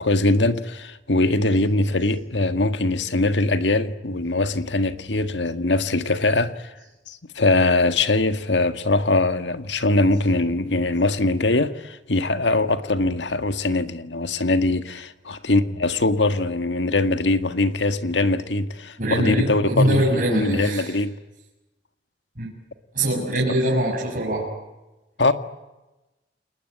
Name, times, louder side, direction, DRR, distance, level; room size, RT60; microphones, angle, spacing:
voice 1, 0.0-6.7 7.1-21.1 23.5-23.6 25.2-25.3, left 2 dB, 90° left, 1.8 m, -22 dB
voice 2, 19.0-21.0 22.4-22.5 22.9-24.5, right 1 dB, 50° right, 7.0 m, -22 dB
29.5 x 20.5 x 9.4 m
head